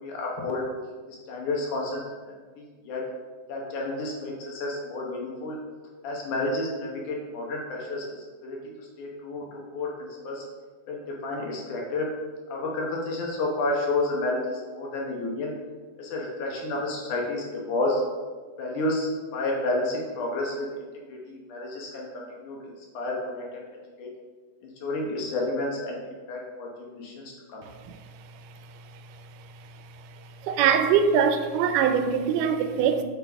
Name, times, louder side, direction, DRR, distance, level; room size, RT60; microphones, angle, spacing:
voice 1, 0.0-0.6 1.1-3.0 3.5-5.6 6.0-9.4 9.7-10.4 10.9-12.1 12.5-15.5 16.0-18.0 18.6-23.6 24.0-24.1 24.6-27.6, left 2 dB, 75° left, 2.5 m, -31 dB
voice 2, 30.4-33.0, right 7 dB, 90° right, 2.2 m, -22 dB
7.3 x 6.2 x 3.5 m
omnidirectional pair, 3.6 m